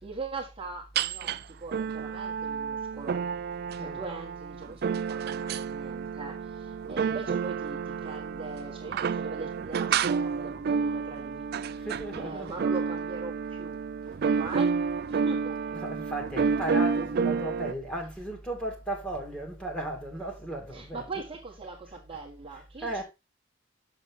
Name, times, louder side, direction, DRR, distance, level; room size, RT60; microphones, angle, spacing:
voice 1, 0.0-3.2 3.8-11.5 11.8-11.9 12.2-13.8 14.2-14.8 15.1-15.6 20.7-23.0, right 3 dB, 25° right, 1.6 m, -41 dB
sound 1, 1.0-1.4 1.7-17.7, right 6 dB, 50° right, 0.3 m, -30 dB
voice 2, 11.8-12.6 14.2-14.4 15.7-21.2 22.5-23.0, right 1 dB, 5° left, 2.1 m, -36 dB
7.1 x 6.7 x 3.7 m
head